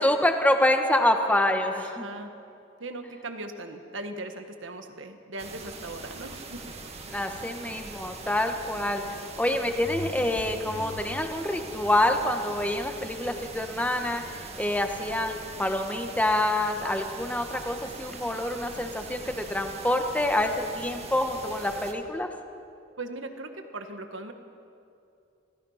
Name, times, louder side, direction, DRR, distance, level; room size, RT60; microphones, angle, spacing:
voice 1, 0.0-2.0 7.1-22.3, left 1 dB, 10° left, 5 dB, 1.4 m, -26 dB
voice 2, 1.7-2.3 2.8-6.6 23.0-24.3, right 2 dB, 75° right, 6 dB, 1.6 m, -39 dB
sound 1, 5.4-21.9, right 3 dB, 35° right, 1.8 m, -42 dB
sound 2, 9.8-14.8 15.3-15.4, left 2 dB, 40° left, 1.0 m, -44 dB
26.5 x 17.0 x 5.8 m, 2.6 s
head